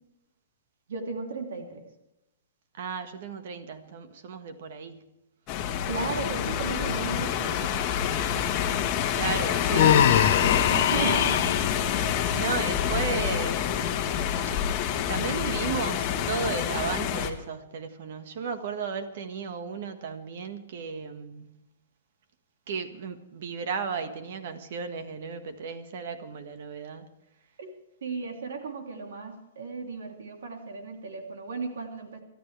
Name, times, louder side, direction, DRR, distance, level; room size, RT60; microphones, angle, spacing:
voice 1, 0.9-1.8 5.9-7.7 10.7-11.4 27.6-27.7 28.0-32.2, right 4 dB, 80° right, 2 dB, 3.1 m, -35 dB
voice 2, 2.8-5.0 9.1-10.1 10.4-11.4 12.3-13.9 15.1-21.5 22.7-27.1, right 5 dB, 50° right, 8 dB, 1.6 m, -34 dB
sound 1, 5.5-17.3, left 9 dB, 25° left, 1.4 m, -27 dB
Human voice, 9.7-11.6, left 9 dB, 55° left, 1.1 m, -21 dB
27.5 x 13.0 x 3.4 m, 0.89 s
hypercardioid pair, 170°, 0 cm